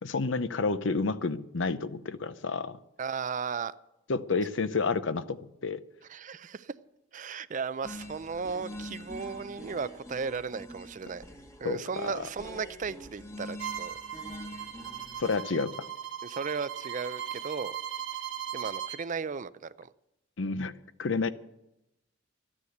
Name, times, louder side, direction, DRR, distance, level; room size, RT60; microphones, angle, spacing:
voice 1, 0.0-2.8 4.1-5.8 11.6-12.3 15.2-15.9 20.4-20.7 21.0-21.3, left 4 dB, 75° left, 0.7 m, -30 dB
voice 2, 3.0-3.7 6.1-6.7 7.1-11.2 11.6-14.0 16.2-17.8 18.5-19.9, right 5 dB, 40° right, 0.5 m, -35 dB
sound 1, 7.8-15.4, left 1 dB, 15° left, 1.3 m, -45 dB
Bowed string instrument, 13.6-19.0, right 9 dB, 70° right, 1.1 m, -38 dB
13.5 x 9.9 x 7.9 m
head